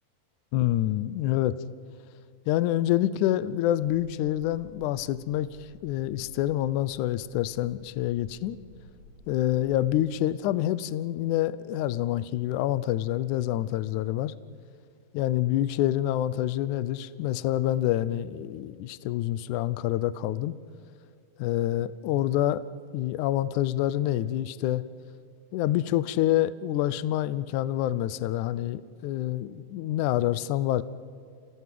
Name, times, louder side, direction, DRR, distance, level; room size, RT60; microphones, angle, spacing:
voice 1, 0.5-1.6 2.5-8.6 9.3-14.3 15.1-20.6 21.4-22.6 22.9-24.8 25.5-30.8, left 13 dB, 90° left, 16 dB, 1.7 m, -27 dB
sound 1, 4.4-10.1, left 1 dB, 60° left, 3.3 m, -54 dB
27.0 x 18.0 x 7.7 m, 2.3 s
omnidirectional pair, 4.3 m